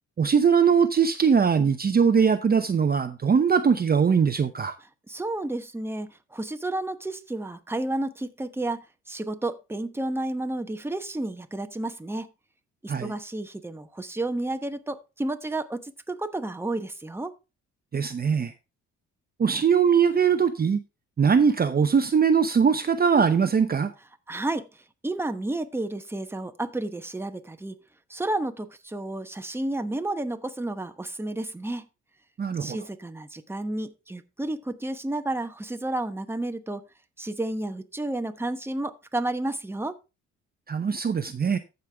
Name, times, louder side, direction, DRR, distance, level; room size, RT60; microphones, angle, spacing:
voice 1, 0.2-4.8 12.9-13.1 17.9-18.5 19.4-20.8 21.2-23.9 32.4-32.8 40.7-41.6, right 6 dB, 30° right, 0.8 m, -21 dB
voice 2, 5.1-12.3 12.8-17.3 24.3-27.8 28.1-31.9 32.6-36.8 37.2-40.0, right 2 dB, 10° right, 1.0 m, -31 dB
15.0 x 5.4 x 3.4 m
cardioid pair, 90°, 30 cm